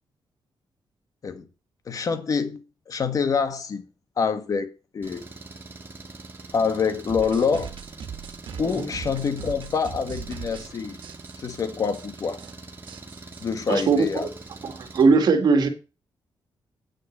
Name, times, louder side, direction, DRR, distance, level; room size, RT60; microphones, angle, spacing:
voice 1, 1.9-2.6 2.9-3.8 4.2-4.7 4.9-5.2 6.5-7.7 8.6-11.0 11.4-12.4 13.4-14.3, left 5 dB, 45° left, 1.5 m, -26 dB
Engine, 5.0-15.1, right 3 dB, 25° right, 2.2 m, -43 dB
sound 1, 7.1-10.7 11.0-11.6 11.9-12.1 12.3-12.5 12.9-14.6, right 7 dB, 75° right, 1.7 m, -39 dB
voice 2, 13.7-14.3 14.6-15.7, right 4 dB, 55° right, 1.9 m, -20 dB
9.1 x 6.6 x 6.6 m
wide cardioid pair, 145°, 8 cm